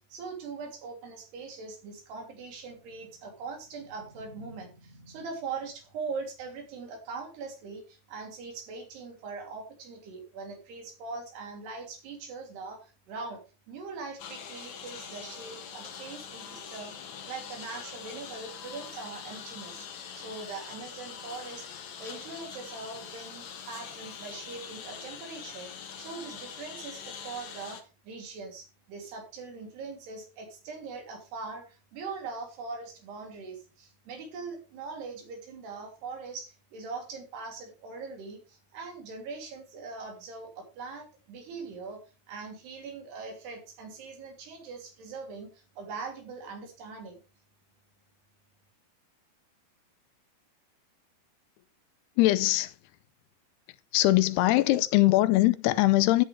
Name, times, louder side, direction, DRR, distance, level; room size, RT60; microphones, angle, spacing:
voice 1, 0.1-13.4 13.7-19.9 20.1-21.7 22.0-42.0 42.3-47.2, right 4 dB, 90° right, 5.2 m, -41 dB
Engine, 14.2-27.8, left 7 dB, 60° left, 2.7 m, -43 dB
voice 2, 52.2-52.8 53.9-56.3, left 17 dB, 85° left, 2.8 m, -22 dB
13.5 x 9.4 x 3.4 m
omnidirectional pair, 4.6 m